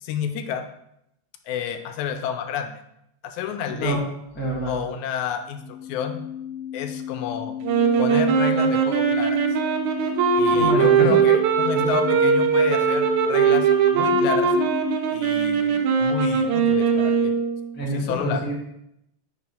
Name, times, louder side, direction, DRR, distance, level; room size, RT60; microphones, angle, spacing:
voice 1, 0.0-0.6 1.5-2.7 3.2-4.0 4.7-6.2 6.7-7.5 8.0-9.4 10.4-14.5 15.1-17.3 17.9-18.4, left 8 dB, 90° left, 7 dB, 2.0 m, -30 dB
voice 2, 3.7-4.0 4.3-4.8 10.4-11.2 11.7-11.9 17.7-18.5, right 2 dB, 10° left, -3 dB, 0.6 m, -26 dB
sound 1, 5.5-15.1, left 9 dB, 45° left, 1.2 m, -32 dB
sound 2, 7.6-17.7, right 6 dB, 85° right, 2.2 m, -20 dB
5.1 x 4.8 x 5.4 m, 0.79 s
omnidirectional pair, 3.4 m